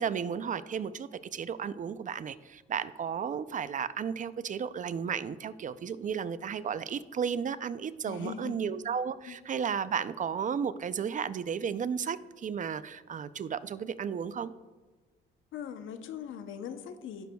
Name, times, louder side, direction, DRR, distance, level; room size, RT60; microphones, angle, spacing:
voice 1, 0.0-14.5, right 7 dB, 40° right, 14 dB, 0.4 m, -33 dB
voice 2, 8.1-8.6 9.3-9.4 15.5-17.3, left 8 dB, 80° left, 9 dB, 0.8 m, -40 dB
16.5 x 6.9 x 2.3 m, 1.3 s
cardioid pair, 90°, 20 cm